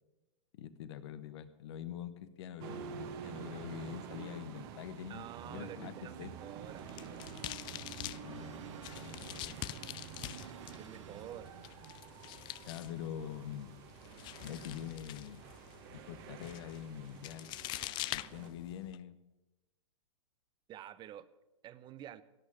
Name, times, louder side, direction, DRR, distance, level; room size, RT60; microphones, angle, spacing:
voice 1, 0.5-6.3 8.1-9.6 12.7-13.7 14.4-15.4 15.9-17.5 18.1-19.2, left 10 dB, 60° left, 14 dB, 1.1 m, -45 dB
sound 1, 2.6-18.5, right 8 dB, 50° right, 1.4 m, -49 dB
voice 2, 5.1-7.3 10.7-11.5 20.7-21.3 21.6-22.2, right 11 dB, 30° right, 16 dB, 0.7 m, -49 dB
sound 2, 6.6-19.0, left 17 dB, 30° left, 0.4 m, -46 dB
sound 3, 7.2-12.0, right 8 dB, 75° right, 1.1 m, -56 dB
17.0 x 6.5 x 8.5 m, 1.0 s
hypercardioid pair, 110°, 16 cm